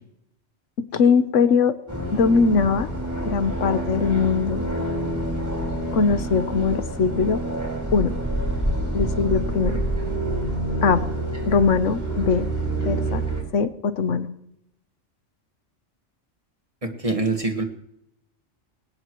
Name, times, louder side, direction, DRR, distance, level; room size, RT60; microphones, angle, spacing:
voice 1, 0.9-1.7 2.1-2.9 3.2-4.6 5.9-7.4 7.9-8.1 8.9-9.8 10.8-11.0 11.5-12.5 12.8-13.2 13.5-14.3, left 5 dB, 85° left, 11 dB, 1.3 m, -21 dB
sound 1, 1.9-13.4, right 1 dB, 15° right, 4.4 m, -27 dB
voice 2, 16.8-17.6, right 3 dB, 30° right, 5 dB, 1.7 m, -25 dB
20.0 x 18.5 x 3.1 m, 0.77 s
omnidirectional pair, 1.2 m